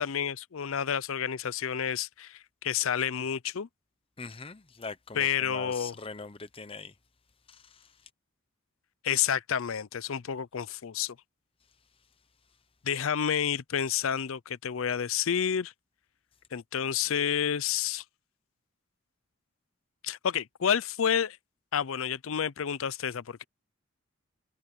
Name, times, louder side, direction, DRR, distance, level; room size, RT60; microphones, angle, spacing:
voice 1, 0.0-3.7 5.2-5.9 9.0-11.2 12.8-15.7 16.5-18.0 20.0-21.4 21.7-23.4, left 8 dB, 70° left, 0.5 m, -29 dB
voice 2, 4.2-6.9 7.5-7.9, left 4 dB, 25° left, 0.8 m, -42 dB
head